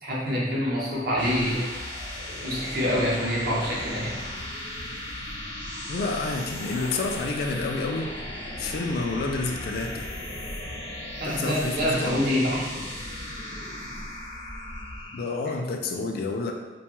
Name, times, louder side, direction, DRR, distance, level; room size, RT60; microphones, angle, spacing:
voice 1, 0.0-1.7 2.4-4.2 11.2-12.8, equal, 55° right, -6 dB, 0.8 m, -26 dB
sound 1, 0.9-15.4, left 1 dB, 90° left, 0.7 m, -36 dB
voice 2, 5.9-8.1 8.6-10.1 11.2-12.3 15.1-16.5, left 3 dB, 55° left, 3 dB, 0.3 m, -29 dB
2.5 x 2.3 x 2.9 m, 1.2 s
head